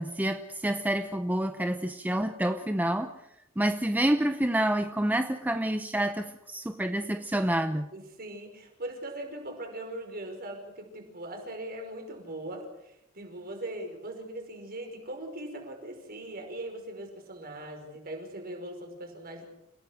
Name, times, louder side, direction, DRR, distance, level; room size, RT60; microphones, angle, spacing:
voice 1, 0.0-3.1 3.6-7.9, right 1 dB, 10° right, 8 dB, 0.7 m, -28 dB
voice 2, 7.9-19.5, right 1 dB, 45° right, 4 dB, 5.4 m, -40 dB
29.5 x 17.5 x 6.4 m, 0.82 s
head